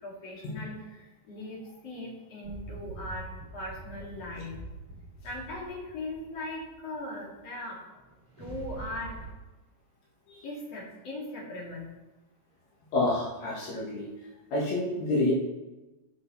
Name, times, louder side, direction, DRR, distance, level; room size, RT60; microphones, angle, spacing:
voice 1, 0.0-0.7 1.3-1.6 1.8-3.2 3.5-4.6 5.2-7.8 8.4-9.1 10.4-11.9, left 1 dB, 40° left, -4 dB, 2.7 m, -39 dB
sound 1, 2.4-7.0 7.9-9.3, right 2 dB, 10° right, 3.0 m, -44 dB
voice 2, 12.9-14.0 14.5-15.3, left 2 dB, 75° left, -4 dB, 1.6 m, -28 dB
15.5 x 6.1 x 4.2 m, 1.1 s
omnidirectional pair, 6.0 m